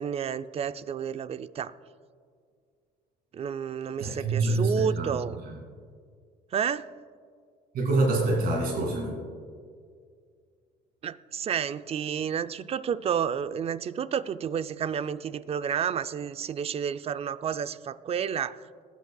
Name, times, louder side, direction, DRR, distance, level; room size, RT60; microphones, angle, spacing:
voice 1, 0.0-1.7 3.3-5.4 6.5-6.9 11.0-18.8, right 8 dB, 35° right, 14 dB, 0.4 m, -30 dB
voice 2, 4.0-5.1 7.7-9.2, right 2 dB, 60° right, -2 dB, 2.5 m, -26 dB
21.0 x 8.3 x 2.3 m, 2.1 s
cardioid pair, 110°, 17 cm